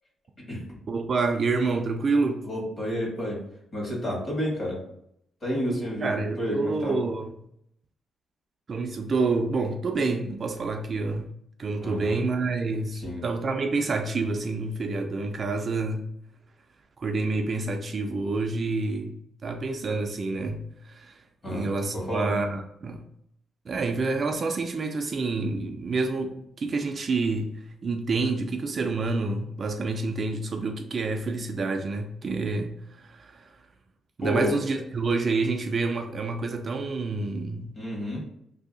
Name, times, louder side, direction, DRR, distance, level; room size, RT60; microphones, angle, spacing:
voice 1, 0.9-2.4 6.0-7.3 8.7-11.3 11.6-16.1 17.0-19.1 19.4-21.2 21.5-23.0 23.7-27.5 27.8-33.5 34.2-37.7, right 3 dB, 35° right, 0.3 m, -28 dB
voice 2, 2.4-3.4 3.7-4.8 5.4-7.0 11.8-12.2 12.9-13.2 21.4-21.7 21.9-22.3 34.2-34.6 37.7-38.2, equal, 40° left, 1.4 m, -30 dB
2.7 x 2.7 x 3.8 m
cardioid pair, 145°, 0 cm